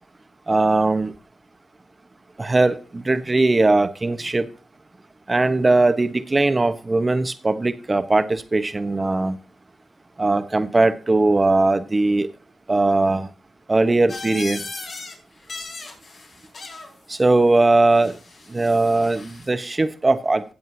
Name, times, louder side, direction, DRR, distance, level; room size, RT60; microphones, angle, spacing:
voice 1, 0.5-1.1 2.4-4.5 5.3-9.4 10.2-12.3 12.7-13.3 13.7-14.6 17.1-18.2 18.5-20.5, right 2 dB, 30° right, 1.1 m, -19 dB
sound 1, 14.1-15.1 15.4-16.9 18.0-19.5, left 3 dB, 65° left, 3.6 m, -37 dB
16.5 x 7.8 x 2.8 m
cardioid pair, 55°, 0 cm